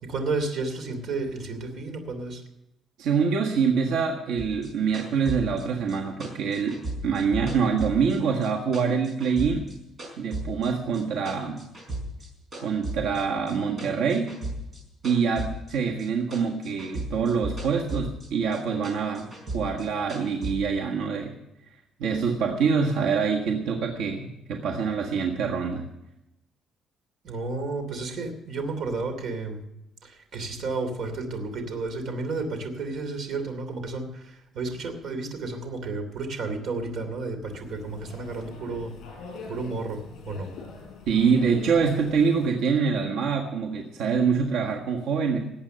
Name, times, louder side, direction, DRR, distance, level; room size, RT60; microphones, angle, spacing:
voice 1, 0.0-2.4 27.2-29.6 30.0-38.9 39.5-40.5, right 3 dB, 50° right, 6 dB, 2.8 m, -32 dB
voice 2, 3.0-9.7 10.2-11.6 12.6-14.3 15.0-21.3 22.0-25.9 41.1-45.4, right 5 dB, 80° right, 1 dB, 1.6 m, -25 dB
sound 1, 4.4-8.5 8.7-10.7 10.9-12.3 12.5-16.1 16.3-18.3 18.5-20.5, right 1 dB, 25° right, 4.9 m, -35 dB
sound 2, 37.5-42.6, left 4 dB, 60° left, 5.1 m, -43 dB
18.5 x 8.3 x 6.8 m, 0.88 s
cardioid pair, 165°, 0 cm